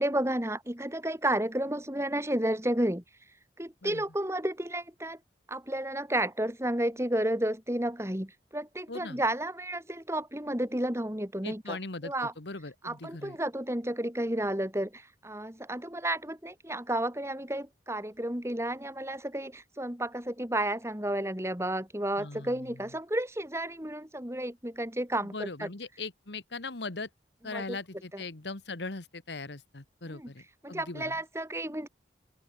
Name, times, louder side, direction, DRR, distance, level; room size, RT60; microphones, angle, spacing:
voice 1, 0.0-3.0 3.6-5.2 5.5-11.8 12.0-12.3 12.8-25.7 27.4-27.8 28.1-28.2 30.1-30.3 30.6-31.9, right 1 dB, 15° right, 2.7 m, -32 dB
voice 2, 8.9-9.2 11.4-13.4 22.2-22.7 25.2-27.1 27.4-31.2, left 3 dB, 80° left, 1.7 m, -40 dB
open air
head